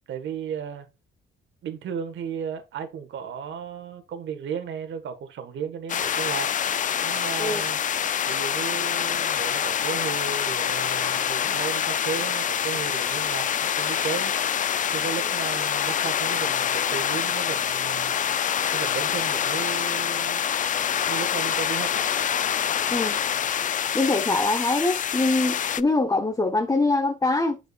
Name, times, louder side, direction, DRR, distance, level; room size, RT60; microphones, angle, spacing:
voice 1, 0.1-0.9 1.6-6.5 7.0-7.8 8.3-14.3 14.9-18.1 18.7-20.4 21.1-22.0, right 7 dB, 70° right, 1.5 m, -34 dB
sound 1, 5.9-25.8, left 9 dB, 40° left, 0.4 m, -26 dB
voice 2, 22.9-23.2 23.9-27.6, left 2 dB, 15° left, 0.9 m, -23 dB
8.4 x 6.1 x 2.4 m
cardioid pair, 90°, 20 cm